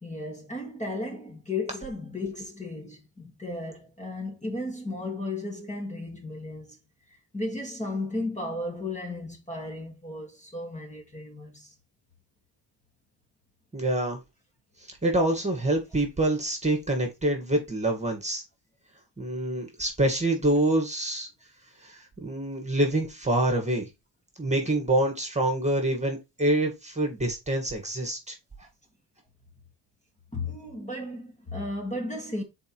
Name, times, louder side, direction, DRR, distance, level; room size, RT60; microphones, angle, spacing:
voice 1, 0.0-6.8 7.1-11.7 30.3-32.4, left 2 dB, 15° left, 2.1 m, -34 dB
voice 2, 13.7-14.2 15.0-18.4 19.2-21.3 21.8-23.9 24.4-28.4, right 1 dB, 15° right, 2.1 m, -26 dB
5.1 x 4.4 x 4.7 m
cardioid pair, 115°, 42 cm